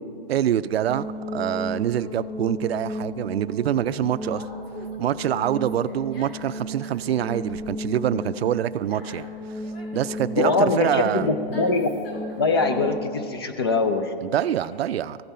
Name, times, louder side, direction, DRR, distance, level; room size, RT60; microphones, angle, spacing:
voice 1, 0.3-1.1 1.3-4.4 5.0-9.3 9.9-11.3 14.2-15.2, right 11 dB, 85° right, 16 dB, 0.5 m, -25 dB
sound 1, 0.9-13.2, left 1 dB, 5° right, 2.5 m, -34 dB
Conversation, 2.9-14.7, left 1 dB, 75° left, 2.2 m, -46 dB
voice 2, 10.4-11.9 12.4-14.1, left 3 dB, 25° left, 8 dB, 0.4 m, -22 dB
15.5 x 5.3 x 4.3 m, 2.3 s
hypercardioid pair, 165°, 30 cm